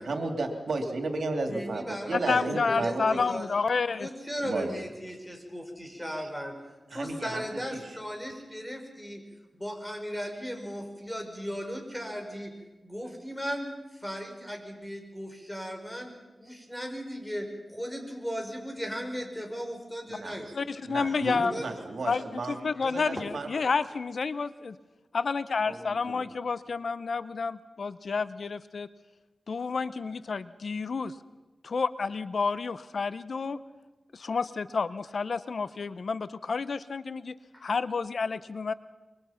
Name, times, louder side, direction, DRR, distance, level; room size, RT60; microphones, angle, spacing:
voice 1, 0.0-3.3 4.4-4.8 6.2-6.3 6.9-8.0 20.1-20.5 20.8-23.5 25.7-26.3, right 3 dB, 85° right, 4 dB, 2.8 m, -34 dB
voice 2, 1.5-3.5 3.9-6.6 6.9-9.2 9.5-12.5 12.8-13.7 14.0-20.5 21.3-21.6, equal, 5° left, 3 dB, 5.1 m, -37 dB
voice 3, 2.3-4.1 20.5-21.5 22.0-24.8 25.1-28.9 29.5-31.1 31.6-33.6 34.1-37.3 37.6-38.7, left 4 dB, 70° left, 15 dB, 0.7 m, -30 dB
25.0 x 23.5 x 5.8 m, 1.2 s
wide cardioid pair, 75°, 0 cm